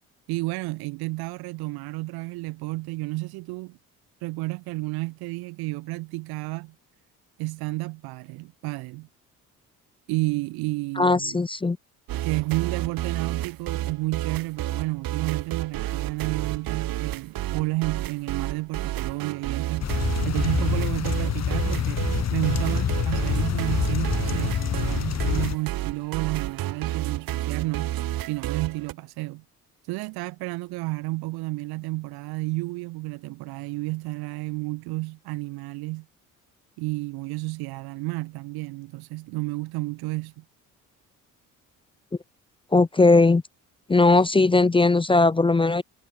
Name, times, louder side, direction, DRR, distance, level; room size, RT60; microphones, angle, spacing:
voice 1, 0.3-3.8 4.2-6.7 7.4-9.1 10.1-11.4 12.2-27.9 28.3-29.4 29.8-36.0 36.8-40.4, right 23 dB, 80° right, 1.2 m, -31 dB
voice 2, 11.0-11.8 42.7-43.4 43.9-45.8, left 3 dB, 15° left, 0.6 m, -18 dB
sound 1, 12.1-28.9, right 14 dB, 65° right, 1.4 m, -31 dB
sound 2, 19.8-25.5, left 8 dB, 45° left, 1.8 m, -26 dB
supercardioid pair, 70°, 37 cm